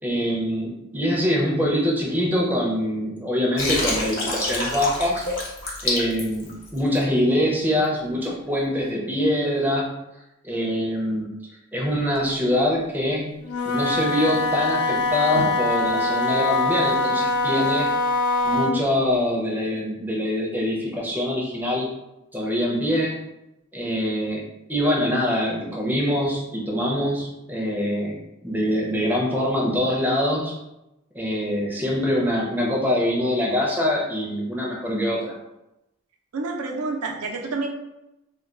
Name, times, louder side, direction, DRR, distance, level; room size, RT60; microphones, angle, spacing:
voice 1, 0.0-5.3 5.8-10.0 10.4-11.3 11.7-13.4 13.6-17.9 18.4-21.9 22.3-23.2 23.7-24.4 24.7-28.2 28.4-30.6 31.1-35.4, left 1 dB, 10° right, -2 dB, 0.5 m, -24 dB
Water, 3.6-7.0, left 2 dB, 60° left, 0.8 m, -27 dB
Wind instrument woodwind instrument, 13.4-18.8, left 2 dB, 85° left, 0.4 m, -23 dB
voice 2, 36.3-37.7, right 3 dB, 90° right, 1 dB, 0.5 m, -28 dB
2.3 x 2.2 x 3.7 m, 0.93 s
head